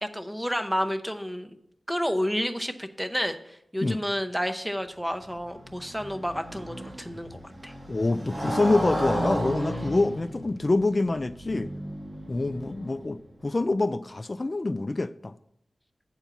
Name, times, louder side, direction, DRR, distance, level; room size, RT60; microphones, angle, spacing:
voice 1, 0.0-1.5 1.9-7.7, equal, 5° right, 7 dB, 0.7 m, -30 dB
Motorcycle, 5.1-13.3, equal, 30° right, 1.4 m, -34 dB
voice 2, 7.9-11.7 12.3-15.3, left 2 dB, 35° left, 13 dB, 0.3 m, -26 dB
8.1 x 4.4 x 6.8 m, 0.77 s
wide cardioid pair, 85°, 0 cm